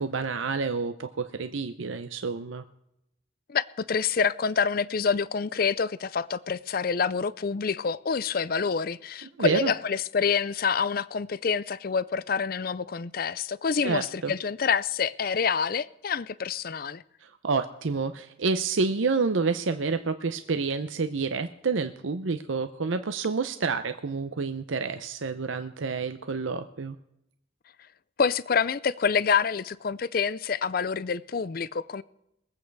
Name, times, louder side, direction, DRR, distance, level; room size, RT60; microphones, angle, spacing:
voice 1, 0.0-2.6 9.4-9.7 13.8-14.3 17.2-27.0, right 4 dB, 85° right, 0.7 m, -29 dB
voice 2, 3.5-17.0 28.2-32.0, left 6 dB, 50° left, 0.5 m, -27 dB
22.0 x 8.5 x 4.7 m
head